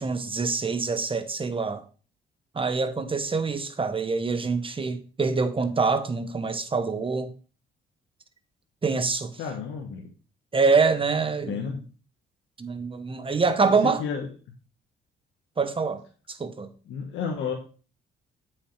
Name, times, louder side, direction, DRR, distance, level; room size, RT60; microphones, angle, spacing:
voice 1, 0.0-1.8 2.5-7.3 8.8-9.3 10.5-11.7 12.6-14.0 15.6-16.0 16.3-16.7, right 4 dB, 25° right, 1.0 m, -25 dB
voice 2, 9.4-10.1 11.5-11.8 13.6-14.3 16.9-17.5, left 6 dB, 80° left, 1.3 m, -32 dB
7.7 x 6.6 x 3.2 m
cardioid pair, 90°, 20 cm